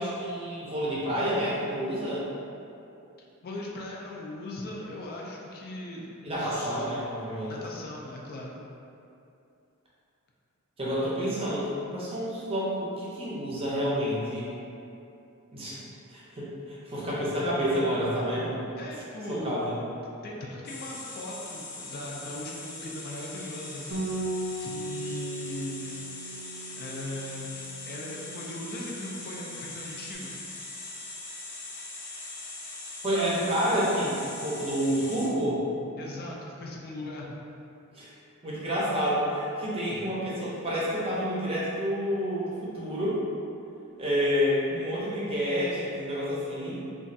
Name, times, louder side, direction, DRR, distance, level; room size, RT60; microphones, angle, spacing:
voice 1, 0.0-2.2 6.2-7.5 10.8-14.5 15.5-15.8 16.1-18.5 19.3-19.8 33.0-34.1 34.4-35.6 37.9-38.1 38.4-43.2 44.0-46.8, equal, 25° right, -7 dB, 0.6 m, -29 dB
voice 2, 3.4-6.9 7.5-8.6 18.8-19.6 20.2-23.9 24.6-26.1 26.8-27.5 27.8-30.3 36.0-37.3, left 1 dB, 40° left, -2 dB, 0.3 m, -39 dB
sound 1, 20.7-35.3, left 2 dB, 85° left, 0.6 m, -41 dB
Bass guitar, 23.9-30.2, right 1 dB, 80° right, 0.5 m, -38 dB
3.0 x 2.3 x 2.6 m, 2.6 s
head